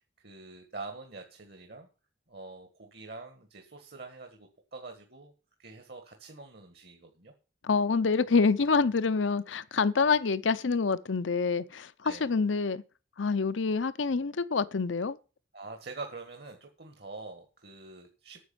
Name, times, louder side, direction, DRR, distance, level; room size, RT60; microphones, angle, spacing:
voice 1, 0.2-1.9 2.3-5.3 5.6-7.3 10.0-10.2 12.0-12.3 15.5-18.4, right 3 dB, 55° right, 1.6 m, -45 dB
voice 2, 7.6-12.8 13.2-15.2, left 4 dB, 80° left, 0.7 m, -27 dB
9.5 x 6.2 x 8.7 m
head